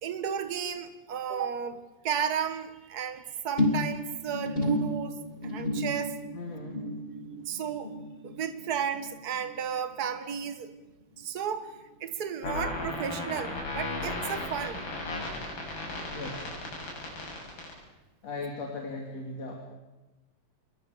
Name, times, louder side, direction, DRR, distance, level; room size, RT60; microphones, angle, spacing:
voice 1, 0.0-5.2 5.4-6.2 7.4-7.9 8.2-10.7 11.2-14.8 16.8-17.1, right 8 dB, 50° right, 10 dB, 1.1 m, -33 dB
sound 1, 3.6-10.2 10.4-10.9 11.2-11.3, left 1 dB, 15° left, 2.7 m, -33 dB
voice 2, 6.3-6.9 7.4-7.6 15.9-16.5 18.2-19.5, left 3 dB, 45° left, 0 dB, 3.9 m, -38 dB
sound 2, 12.4-17.7, left 2 dB, 90° left, 8.9 m, -34 dB
27.0 x 22.5 x 6.8 m, 1.1 s
omnidirectional pair, 4.2 m